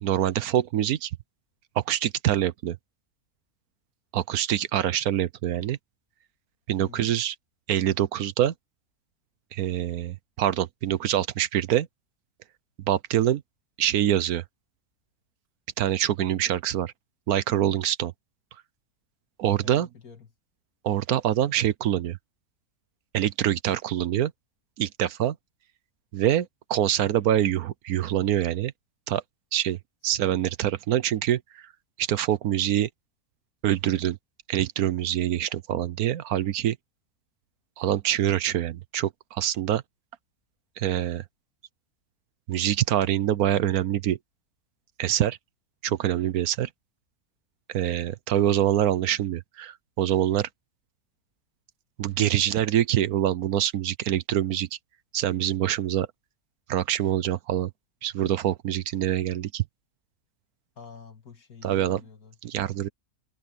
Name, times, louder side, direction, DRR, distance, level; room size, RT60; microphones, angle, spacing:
voice 1, 0.0-1.1 1.8-2.8 4.1-5.8 6.7-7.3 7.7-8.5 9.5-11.9 12.9-13.4 13.8-14.4 15.8-16.9 17.3-18.1 19.4-19.9 20.8-22.2 23.1-24.3 24.8-25.4 26.1-28.7 29.1-29.2 29.5-29.8 30.0-31.6 32.0-32.9 33.6-34.2 34.5-36.8 37.8-39.8 40.8-41.2 42.5-44.2 45.0-45.4 45.8-46.7 47.7-50.5 52.0-54.7 55.1-56.1 56.7-57.7 58.0-59.6 61.6-62.0 62.4-62.9, right 11 dB, 75° right, 1.2 m, -25 dB
voice 2, 6.8-7.2 19.6-20.3 60.8-62.4, left 6 dB, 70° left, 2.8 m, -47 dB
omnidirectional pair, 1.6 m